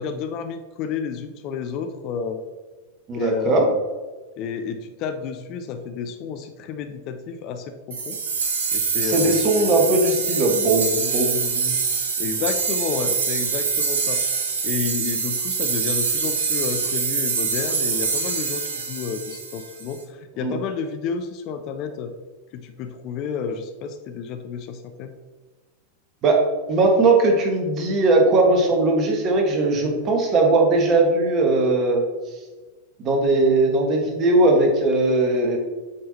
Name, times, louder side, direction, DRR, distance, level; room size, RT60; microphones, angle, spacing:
voice 1, 0.0-2.4 3.1-3.8 4.4-8.2 8.7-9.7 12.2-14.2 14.6-22.1 22.5-25.1, left 6 dB, 40° left, 8 dB, 0.6 m, -30 dB
voice 2, 3.1-3.7 9.0-11.7 20.4-20.5 26.2-26.4 26.7-32.0 33.0-35.6, right 2 dB, 30° right, 1 dB, 1.5 m, -19 dB
sound 1, 7.9-19.9, right 5 dB, 65° right, 1.0 m, -25 dB
8.3 x 4.7 x 4.1 m, 1.3 s
figure-of-eight pair, 90°, 0 cm